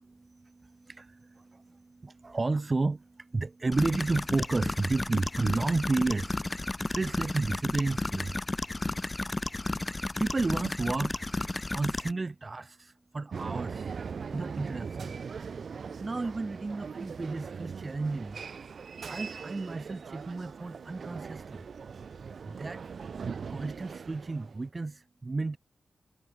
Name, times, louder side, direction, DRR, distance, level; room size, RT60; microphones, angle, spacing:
voice 1, 0.0-8.4 10.2-13.9 14.3-15.2 16.0-18.4 19.1-21.6 22.4-22.8 23.5-25.6, right 3 dB, 40° right, 2.1 m, -32 dB
sound 1, 3.7-12.1, left 2 dB, 25° left, 1.3 m, -33 dB
sound 2, 13.3-24.6, right 6 dB, 70° right, 5.3 m, -40 dB
cardioid pair, 70°, 0 cm